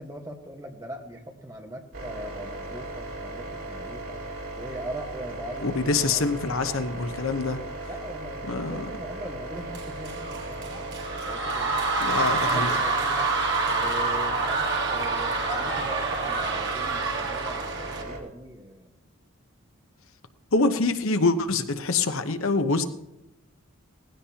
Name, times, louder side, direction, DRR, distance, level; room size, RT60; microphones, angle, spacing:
voice 1, 0.0-4.2 4.6-5.8 6.1-6.2 7.9-11.8 12.2-13.3 13.7-18.9, right 1 dB, 15° right, 2 dB, 1.4 m, -41 dB
sound 1, 1.9-18.2, right 2 dB, 75° right, 3.6 m, -37 dB
voice 2, 5.6-7.9 8.4-8.9 12.0-12.7 20.5-22.8, left 3 dB, 70° left, 9 dB, 1.0 m, -25 dB
sound 2, 9.7-18.0, right 3 dB, 55° right, 1.6 m, -27 dB
19.0 x 15.5 x 2.9 m, 0.90 s
head